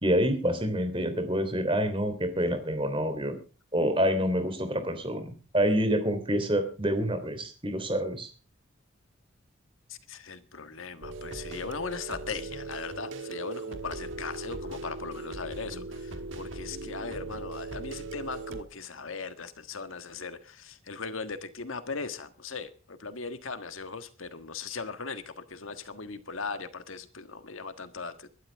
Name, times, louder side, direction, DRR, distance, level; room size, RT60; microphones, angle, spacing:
voice 1, 0.0-3.3 3.7-8.3, equal, 25° right, 3.3 m, -27 dB
voice 2, 9.9-28.3, left 4 dB, 85° left, 1.6 m, -39 dB
sound 1, 11.0-18.6, right 3 dB, 70° right, 1.5 m, -39 dB
23.0 x 12.0 x 3.5 m
head